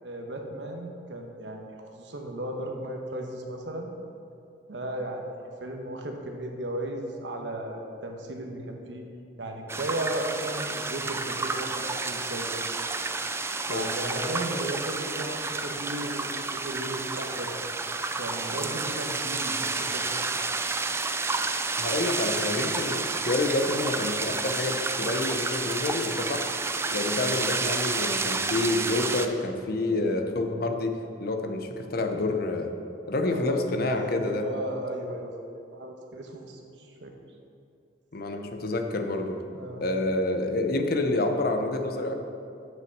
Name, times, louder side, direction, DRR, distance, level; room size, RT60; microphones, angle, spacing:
voice 1, 0.0-3.9 4.7-5.2 5.6-9.1 9.4-12.7 13.7-17.7 18.2-20.2 33.2-35.3 35.7-37.1 39.5-39.8, right 1 dB, 75° right, 2 dB, 1.1 m, -35 dB
sound 1, 9.7-29.3, right 3 dB, 15° right, 0.3 m, -30 dB
voice 2, 21.8-26.5 26.9-32.7 33.1-34.5 38.1-39.4 39.8-42.1, left 2 dB, 55° left, 5 dB, 0.7 m, -28 dB
7.6 x 6.0 x 6.5 m, 2.6 s
head